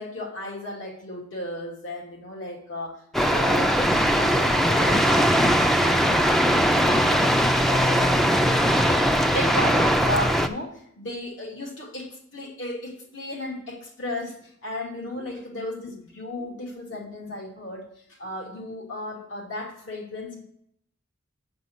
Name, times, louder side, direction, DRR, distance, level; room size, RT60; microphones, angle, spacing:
voice 1, 0.0-6.2 6.6-17.9 18.2-20.4, left 1 dB, 70° left, -1 dB, 2.7 m, -35 dB
sound 1, 3.1-10.5, equal, ahead, 0.5 m, -20 dB
8.3 x 5.3 x 6.1 m, 0.70 s
head